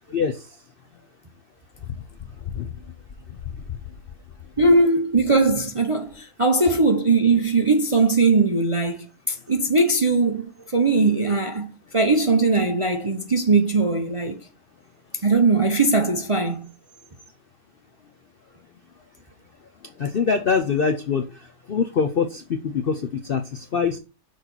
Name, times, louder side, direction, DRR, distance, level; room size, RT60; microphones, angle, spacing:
voice 1, 4.6-9.0 9.3-11.7 11.9-14.4 15.2-16.7, right 3 dB, 35° right, 0.5 m, -20 dB
voice 2, 20.0-21.3 21.7-24.0, left 6 dB, 60° left, 0.6 m, -23 dB
6.5 x 4.1 x 6.0 m
omnidirectional pair, 1.7 m